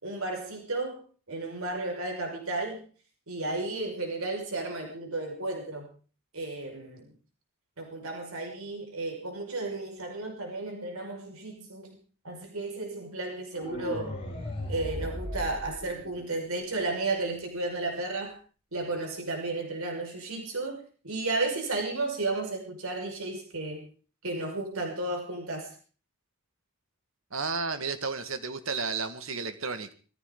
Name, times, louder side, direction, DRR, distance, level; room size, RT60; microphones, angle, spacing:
voice 1, 0.0-2.9 3.3-5.9 6.3-7.1 7.8-12.0 12.2-14.2 14.7-18.4 18.7-23.9 24.2-25.7, right 2 dB, 80° right, 2 dB, 5.6 m, -33 dB
sound 1, 13.5-16.5, left 1 dB, 25° left, 7.1 m, -37 dB
voice 2, 27.3-29.9, right 4 dB, 65° right, 9 dB, 1.9 m, -32 dB
22.0 x 15.0 x 3.9 m, 0.39 s
head